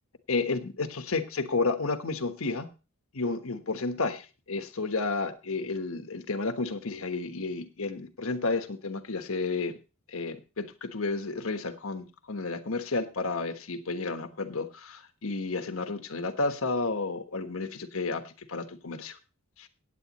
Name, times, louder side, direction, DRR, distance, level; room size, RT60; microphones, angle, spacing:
voice 1, 0.3-2.7 3.1-9.8 10.1-19.2 19.6-19.7, left 3 dB, 70° left, 9 dB, 1.3 m, -31 dB
16.0 x 9.1 x 3.0 m, 0.31 s
head